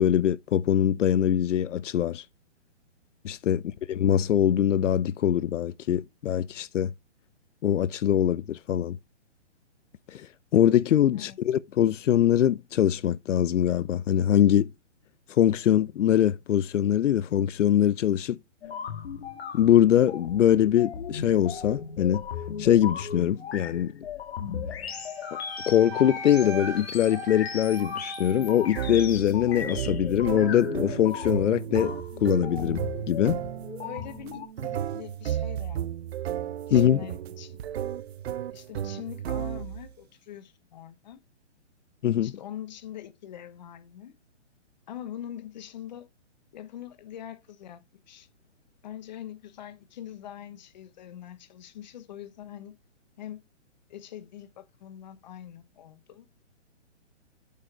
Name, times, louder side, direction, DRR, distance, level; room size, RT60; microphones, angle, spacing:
voice 1, 0.0-2.2 3.2-3.6 3.9-6.9 7.6-9.0 10.1-10.3 10.5-14.7 15.3-18.4 19.5-22.3 22.6-23.9 25.3-25.4 25.7-31.9 32.2-32.8 33.1-33.4 36.7-37.0 42.0-42.3, left 10 dB, 85° left, 0.5 m, -23 dB
voice 2, 3.5-3.8 11.1-11.4 33.8-35.8 36.7-37.6 38.5-41.2 42.1-44.2 44.9-46.1 46.5-47.8 48.1-48.3 48.8-52.8 53.2-53.4 53.9-56.3, left 10 dB, 40° left, 1.0 m, -43 dB
sound 1, 18.6-34.5, left 7 dB, 60° left, 1.6 m, -37 dB
Wind instrument woodwind instrument, 24.9-29.2, right 4 dB, 25° right, 1.9 m, -40 dB
sound 2, 28.8-39.9, right 10 dB, 60° right, 0.5 m, -34 dB
8.3 x 4.6 x 4.3 m
hypercardioid pair, 160°, 36 cm